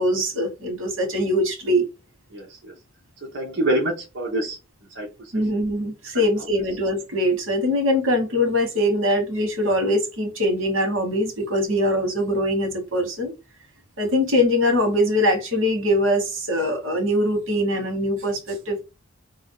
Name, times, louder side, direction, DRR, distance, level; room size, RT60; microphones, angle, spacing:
voice 1, 0.0-1.8 5.3-13.3 14.0-18.8, left 1 dB, 85° right, 4 dB, 1.3 m, -22 dB
voice 2, 2.3-2.7 3.2-4.6 4.9-5.3, right 1 dB, 65° right, -3 dB, 0.9 m, -26 dB
2.6 x 2.3 x 3.5 m, 0.26 s
head